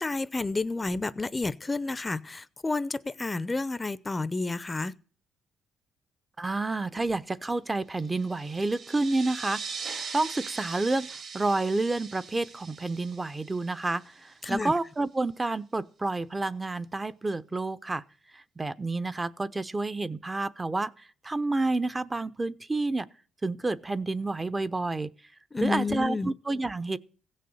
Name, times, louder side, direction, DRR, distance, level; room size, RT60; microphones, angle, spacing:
voice 1, 0.0-4.9 14.4-14.7 25.5-26.3, left 3 dB, 20° left, 0.7 m, -30 dB
voice 2, 6.4-18.0 18.3-23.1 23.4-25.1 25.6-27.0, right 2 dB, 20° right, 0.9 m, -29 dB
sound 1, 8.0-14.3, right 5 dB, 55° right, 3.0 m, -41 dB
16.5 x 6.7 x 8.0 m
cardioid pair, 90°, 0 cm